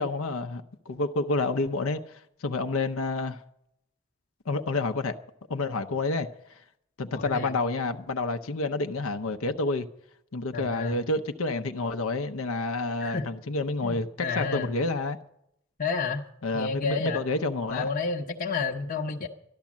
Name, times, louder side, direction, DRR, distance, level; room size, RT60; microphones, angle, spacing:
voice 1, 0.0-3.4 4.5-5.2 5.5-6.6 7.0-9.9 10.3-15.2 16.4-17.9, left 3 dB, 80° left, 0.7 m, -29 dB
voice 2, 7.2-7.6 10.5-11.0 13.0-13.3 13.8-14.7 15.8-16.3 16.5-17.3 17.7-19.3, left 4 dB, 45° left, 0.9 m, -30 dB
12.5 x 12.0 x 7.3 m
head